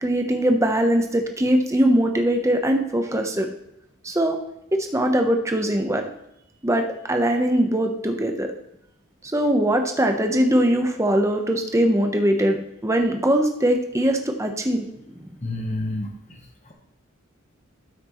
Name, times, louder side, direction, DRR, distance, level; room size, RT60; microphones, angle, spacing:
voice 1, 0.0-3.5 4.0-4.4 4.9-6.0 6.6-8.5 9.3-12.6 12.8-14.9 15.2-15.3, right 1 dB, 15° right, 4 dB, 0.8 m, -21 dB
voice 2, 15.4-16.7, left 1 dB, 30° left, 2 dB, 1.1 m, -30 dB
12.5 x 6.0 x 3.0 m, 0.81 s
head